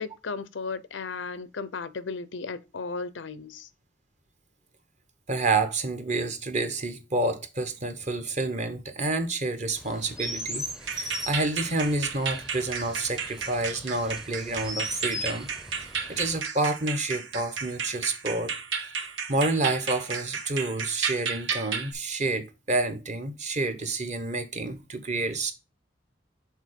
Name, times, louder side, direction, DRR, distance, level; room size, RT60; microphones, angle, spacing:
voice 1, 0.0-3.7, left 4 dB, 85° left, 0.6 m, -35 dB
voice 2, 5.3-15.5 15.7-18.5 18.8-18.9 19.3-25.5, right 2 dB, 40° right, 1.0 m, -29 dB
Chirp tweet, 9.8-16.4, equal, ahead, 0.6 m, -39 dB
sound 1, 10.8-21.9, right 6 dB, 90° right, 1.1 m, -34 dB
6.5 x 3.9 x 5.0 m
head